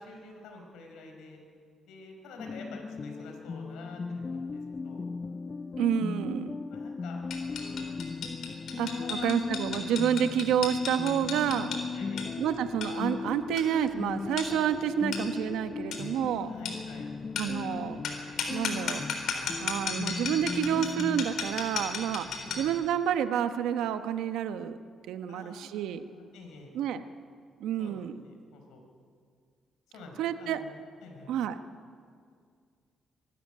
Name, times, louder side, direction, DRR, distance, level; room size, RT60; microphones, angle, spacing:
voice 1, 0.0-1.4 1.9-5.1 6.7-8.0 8.8-9.3 10.2-10.3 11.9-12.3 16.4-17.1 22.3-22.7 25.3-26.7 27.8-28.8 29.9-31.3, left 3 dB, 90° left, 2 dB, 4.6 m, -48 dB
sound 1, 2.4-21.3, left 4 dB, 35° left, 0.6 m, -37 dB
voice 2, 5.8-6.5 8.8-11.7 12.4-16.5 17.4-18.0 18.5-19.0 19.6-22.3 22.5-24.8 25.1-26.1 26.7-27.0 27.6-28.2 30.2-30.6 31.3-31.6, right 9 dB, 85° right, 10 dB, 1.0 m, -29 dB
sound 2, 7.3-22.8, left 5 dB, 70° left, 4.0 m, -36 dB
24.0 x 13.0 x 10.0 m, 2.1 s
cardioid pair, 90°, 0 cm